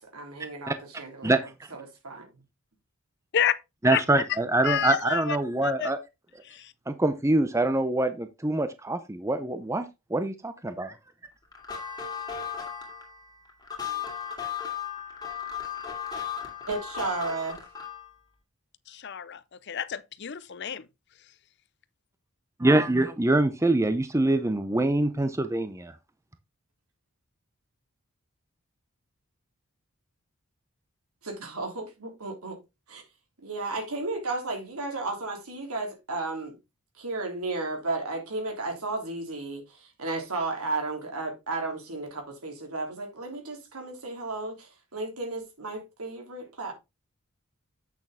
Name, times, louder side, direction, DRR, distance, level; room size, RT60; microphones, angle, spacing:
voice 1, 0.0-2.3 16.7-17.6 31.2-32.6 32.9-33.0 33.4-36.6 37.0-46.7, right 3 dB, 85° right, 3.3 m, -34 dB
voice 2, 3.8-6.0 6.9-10.9 22.6-25.9, right 2 dB, 15° right, 0.6 m, -24 dB
voice 3, 4.6-5.4 5.6-5.9 6.4-6.7 18.9-20.9, left 9 dB, 50° left, 0.6 m, -29 dB
sound 1, 11.5-18.1, left 7 dB, 20° left, 2.4 m, -36 dB
8.3 x 6.6 x 3.6 m
head